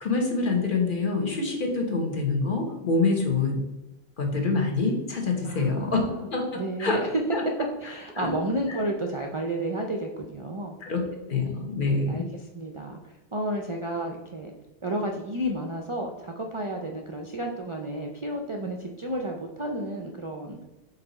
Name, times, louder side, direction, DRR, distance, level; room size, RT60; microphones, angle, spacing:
voice 1, 0.0-3.6 4.2-7.0 7.3-7.4 8.1-8.3 10.8-11.0 11.3-12.2, left 3 dB, 50° left, 2 dB, 1.2 m, -26 dB
voice 2, 5.4-6.3 6.5-7.2 7.8-10.8 11.9-14.5 14.8-20.6, right 1 dB, 40° right, 2 dB, 0.4 m, -32 dB
5.6 x 4.1 x 4.0 m, 1.1 s
omnidirectional pair, 1.2 m